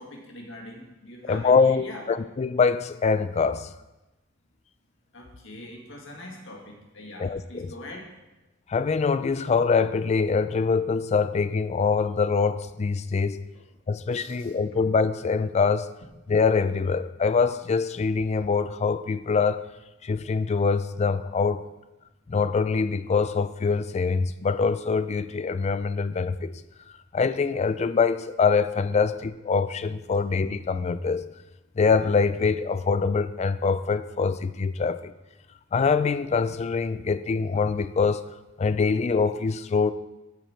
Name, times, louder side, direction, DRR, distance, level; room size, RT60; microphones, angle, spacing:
voice 1, 0.0-2.0 5.1-8.1 14.1-14.5, left 1 dB, 65° left, 0 dB, 1.9 m, -43 dB
voice 2, 1.2-3.7 7.2-7.7 8.7-13.5 13.9-15.9 16.3-19.6 20.0-21.6 22.3-26.5 27.1-31.3 31.8-35.1 35.7-38.2 38.6-39.9, left 5 dB, 30° left, 13 dB, 0.3 m, -24 dB
14.0 x 5.2 x 4.4 m, 1.0 s
head